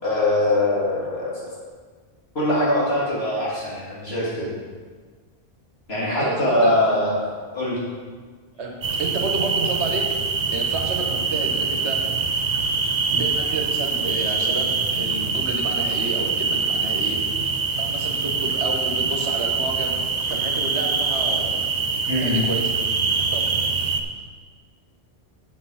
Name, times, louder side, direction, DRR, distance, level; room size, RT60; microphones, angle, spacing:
voice 1, 0.0-1.4 2.3-4.5 5.9-7.1 7.5-7.8 22.1-22.5, left 1 dB, 65° left, -8 dB, 3.4 m, -22 dB
voice 2, 6.0-6.8 8.6-10.1 10.5-12.0 13.1-17.5 17.8-20.0 20.3-21.7 22.2-22.7 23.2-23.5, right 2 dB, 85° right, 1 dB, 1.7 m, -30 dB
sound 1, 8.8-24.0, right 4 dB, 45° right, 0.8 m, -24 dB
8.1 x 7.3 x 5.7 m, 1.5 s
omnidirectional pair, 1.1 m